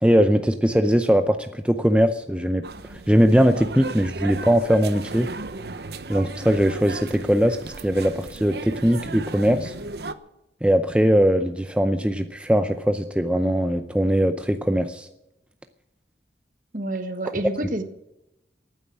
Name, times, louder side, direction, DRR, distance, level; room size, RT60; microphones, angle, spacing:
voice 1, 0.0-2.6 3.1-5.3 6.1-9.7 10.6-15.1, equal, 5° right, 8 dB, 0.6 m, -20 dB
sound 1, 2.6-10.1, right 3 dB, 60° right, 0.9 m, -36 dB
voice 2, 16.7-17.8, right 1 dB, 45° right, 8 dB, 1.5 m, -28 dB
15.0 x 9.3 x 8.6 m, 0.89 s
head